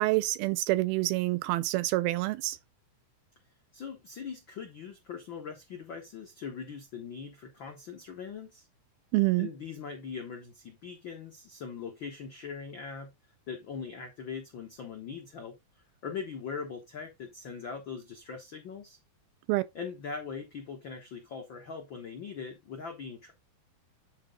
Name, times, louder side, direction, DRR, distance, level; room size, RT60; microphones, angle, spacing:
voice 1, 0.0-2.6 9.1-9.5 19.5-19.6, right 20 dB, 90° right, 2.6 m, -27 dB
voice 2, 3.7-8.7 9.4-13.1 13.5-15.6 16.0-19.0 19.7-23.3, left 6 dB, 90° left, 1.0 m, -41 dB
9.9 x 4.0 x 3.6 m
omnidirectional pair, 4.2 m